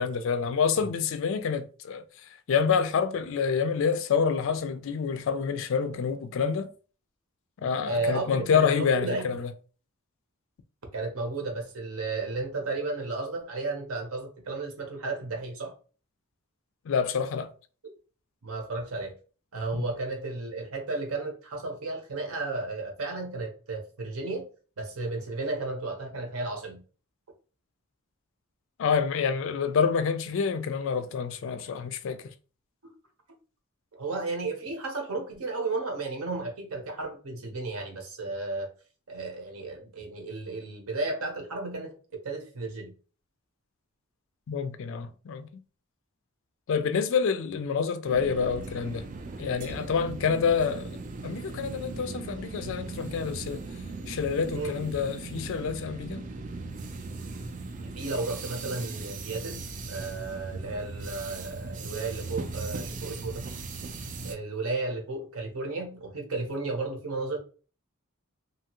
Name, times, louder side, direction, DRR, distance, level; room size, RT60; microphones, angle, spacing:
voice 1, 0.0-2.0 2.5-6.7 7.6-9.5 16.9-17.5 19.7-19.9 28.8-32.2 44.5-45.5 46.7-49.1 49.4-51.0 51.2-53.6 54.1-56.2, left 6 dB, 60° left, 0.3 m, -27 dB
voice 2, 7.9-8.7 8.9-9.3 10.9-15.7 18.4-19.1 19.5-24.5 24.8-26.8 32.8-32.9 33.9-38.7 39.1-42.9 53.6-53.7 54.5-54.8 57.8-63.4 64.2-67.4, right 3 dB, 75° right, 0.8 m, -33 dB
sound 1, 48.1-64.4, right 3 dB, 35° right, 0.3 m, -38 dB
2.8 x 2.3 x 2.9 m
head